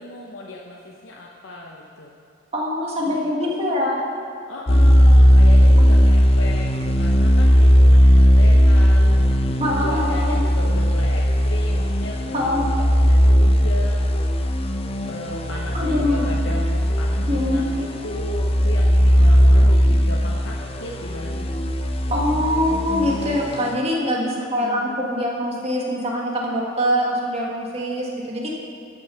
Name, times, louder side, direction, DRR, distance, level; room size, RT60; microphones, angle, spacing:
voice 1, 0.0-2.1 3.0-3.8 4.5-14.7 15.1-21.5 24.3-25.0, left 2 dB, 60° left, -2 dB, 0.8 m, -36 dB
voice 2, 2.5-4.0 9.6-10.4 12.3-12.7 15.7-16.3 17.3-17.6 22.1-28.6, left 1 dB, 30° right, -2 dB, 1.6 m, -23 dB
sound 1, 4.7-23.7, equal, 25° left, 0.5 m, -17 dB
12.0 x 6.2 x 5.6 m, 2.4 s
head